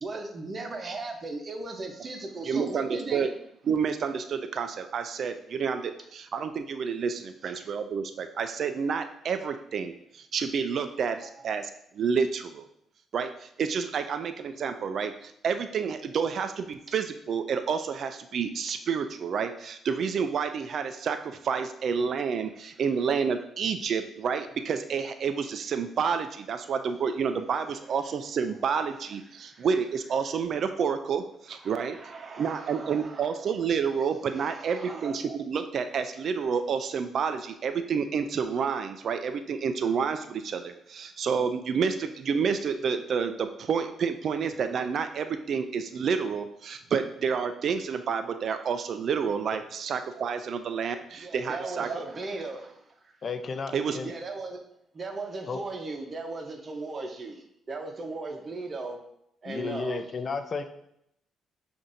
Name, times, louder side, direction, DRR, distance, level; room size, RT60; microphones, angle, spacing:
voice 1, 0.0-3.3 7.4-7.7 29.3-29.7 31.5-33.4 34.3-35.2 51.2-53.2 54.0-54.6 54.9-59.0 59.4-60.0, right 3 dB, 35° right, 3 dB, 0.8 m, -38 dB
voice 2, 2.4-3.3 3.7-12.7 13.1-52.0 53.7-54.0, right 6 dB, 60° right, 8 dB, 0.3 m, -29 dB
voice 3, 53.2-54.1 55.5-55.6 59.4-60.6, left 4 dB, 45° left, 8 dB, 0.4 m, -33 dB
7.0 x 2.6 x 2.6 m, 0.76 s
cardioid pair, 90°, 0 cm